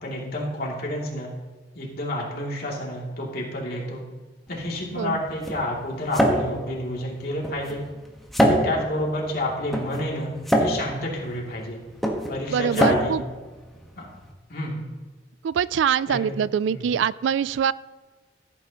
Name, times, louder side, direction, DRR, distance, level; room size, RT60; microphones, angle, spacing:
voice 1, 0.0-1.3 1.7-4.0 4.5-7.8 8.4-11.8 12.3-13.2 14.0-14.1 14.5-14.9 16.1-16.2 16.7-16.8, left 1 dB, 55° left, -3 dB, 2.8 m, -29 dB
sound 1, 4.5-14.3, equal, ahead, 1.3 m, -26 dB
voice 2, 12.5-13.2 15.4-17.7, right 8 dB, 85° right, 19 dB, 0.3 m, -24 dB
15.5 x 8.9 x 3.0 m, 1.3 s
head